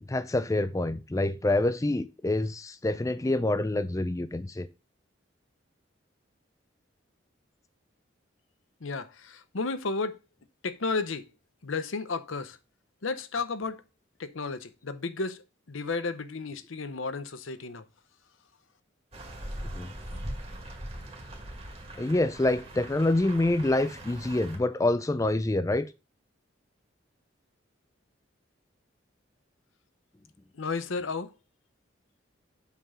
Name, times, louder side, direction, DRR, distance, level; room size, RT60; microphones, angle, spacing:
voice 1, 0.1-4.7 19.7-19.9 22.0-25.9, left 2 dB, 15° left, 0.4 m, -26 dB
voice 2, 8.8-10.2 10.6-11.2 11.6-12.6 13.0-13.8 14.2-17.8 30.6-31.3, left 4 dB, 85° left, 0.8 m, -33 dB
sound 1, 19.1-24.6, right 1 dB, 30° right, 2.1 m, -41 dB
8.3 x 3.7 x 5.6 m
head